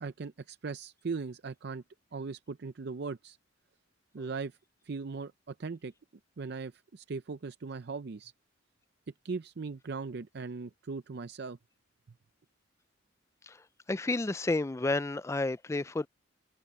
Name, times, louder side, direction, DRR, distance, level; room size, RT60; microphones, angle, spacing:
voice 1, 0.0-1.8 2.1-3.4 4.1-4.6 4.8-5.9 6.4-8.3 9.2-11.6, right 4 dB, 55° right, 0.5 m, -39 dB
voice 2, 13.9-16.1, left 2 dB, 15° left, 0.3 m, -30 dB
head